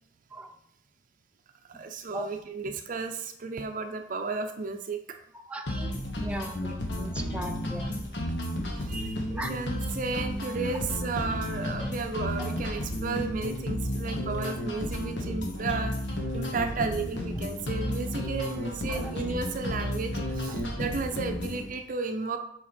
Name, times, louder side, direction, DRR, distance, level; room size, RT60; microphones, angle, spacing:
voice 1, 1.7-5.0 7.9-8.0 8.8-15.9 16.3-22.4, right 4 dB, 50° right, 5 dB, 0.5 m, -33 dB
voice 2, 5.5-7.9 9.4-9.5 11.8-12.6 15.3-15.4 18.9-19.1, right 1 dB, 5° right, 2 dB, 0.7 m, -39 dB
sound 1, 5.7-21.7, equal, 85° left, 1.4 m, -32 dB
7.5 x 4.7 x 4.3 m, 0.74 s
head